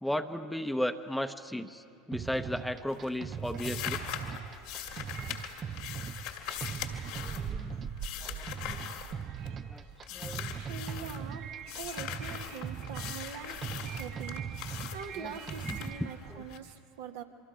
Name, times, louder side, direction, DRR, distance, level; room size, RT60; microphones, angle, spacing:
voice 1, 0.0-4.0 5.2-5.3 7.1-7.7 8.2-8.9 9.7-9.8 10.1-10.5 15.2-15.3 15.7-15.8 16.3-16.4, left 1 dB, 5° left, 9 dB, 0.9 m, -35 dB
sound 1, 2.1-16.0, right 7 dB, 35° right, 0.5 m, -40 dB
sound 2, 2.2-2.7 2.9-9.7 10.0-11.2 11.7-16.6, left 11 dB, 65° left, 2.1 m, -41 dB
sound 3, 4.0-16.6, right 7 dB, 55° right, 1.3 m, -47 dB
voice 2, 9.8-11.5 11.8-17.2, right 7 dB, 75° right, 4 dB, 1.4 m, -44 dB
26.0 x 24.0 x 5.0 m, 2.5 s
hypercardioid pair, 80°, 0 cm